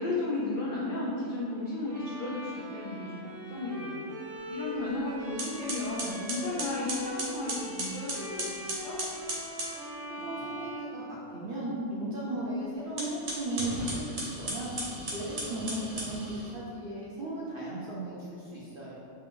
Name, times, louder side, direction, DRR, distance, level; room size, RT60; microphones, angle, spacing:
voice 1, 0.0-4.0 4.5-9.0, left 2 dB, 75° left, -6 dB, 0.4 m, -34 dB
Bowed string instrument, 1.9-11.7, equal, 5° left, 0.6 m, -41 dB
sound 1, 4.8-5.0 5.4-9.8 12.9-16.5, right 1 dB, 75° right, 1.3 m, -36 dB
voice 2, 10.1-14.7 15.1-18.9, right 1 dB, 60° right, -7 dB, 0.6 m, -36 dB
3.2 x 2.4 x 3.6 m, 2.4 s
omnidirectional pair, 1.4 m